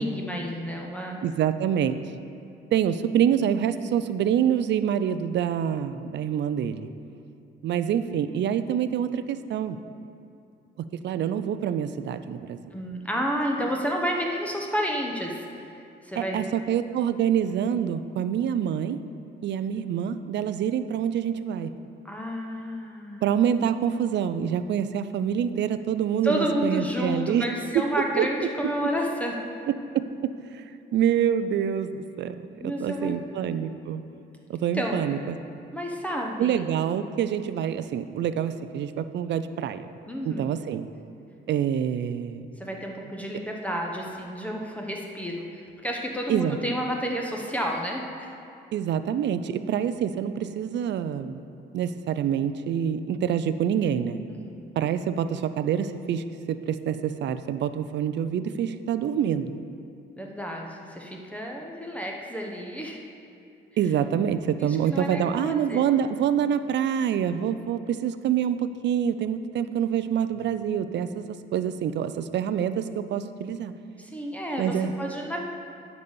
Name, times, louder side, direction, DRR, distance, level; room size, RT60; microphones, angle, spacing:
voice 1, 0.0-1.2 12.7-16.5 22.0-23.2 26.2-29.4 32.6-33.2 34.7-35.0 35.7-36.6 40.1-40.5 42.6-48.3 54.3-54.7 60.2-63.0 64.6-65.8 74.0-75.4, equal, 5° left, 0 dB, 0.9 m, -31 dB
voice 2, 1.2-2.0 2.7-6.9 7.6-9.8 10.8-12.8 16.2-19.0 19.4-21.7 23.2-27.4 28.2-28.3 29.9-30.6 30.9-34.0 34.5-35.4 36.4-39.9 40.3-40.9 41.5-42.5 46.3-46.6 48.7-51.4 51.7-54.2 54.8-59.5 63.8-73.7 74.6-74.9, right 9 dB, 65° right, 11 dB, 0.5 m, -26 dB
9.8 x 4.1 x 6.9 m, 2.6 s
cardioid pair, 90°, 20 cm